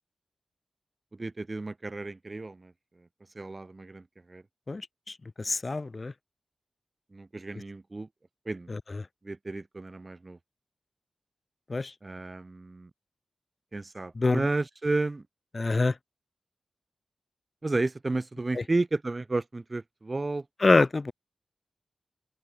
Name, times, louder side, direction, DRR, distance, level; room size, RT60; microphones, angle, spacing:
voice 1, 1.2-2.7 3.3-4.4 7.1-8.1 8.5-8.7 9.2-10.4 12.0-12.9 13.7-15.2 17.6-20.4, right 2 dB, 40° right, 2.6 m, -32 dB
voice 2, 5.4-6.1 8.7-9.0 11.7-11.9 14.2-14.4 15.5-15.9 18.6-18.7 20.6-21.1, left 3 dB, 45° left, 0.9 m, -25 dB
open air
cardioid pair, 50°, 0 cm